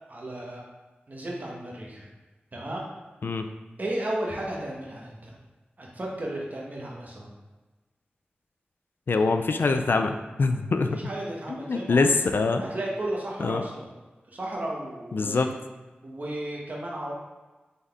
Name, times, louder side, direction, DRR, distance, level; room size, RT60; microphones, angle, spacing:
voice 1, 0.1-0.6 1.1-2.1 2.5-2.9 3.8-5.3 5.8-7.3 10.9-12.1 12.6-13.8 14.3-15.5 16.0-17.1, right 1 dB, 50° right, -3 dB, 1.2 m, -34 dB
voice 2, 9.1-11.0 11.5-12.6 13.4-13.6 15.1-15.5, left 3 dB, 65° left, 7 dB, 0.3 m, -24 dB
4.0 x 3.6 x 3.4 m, 1.2 s
cardioid pair, 50°, 4 cm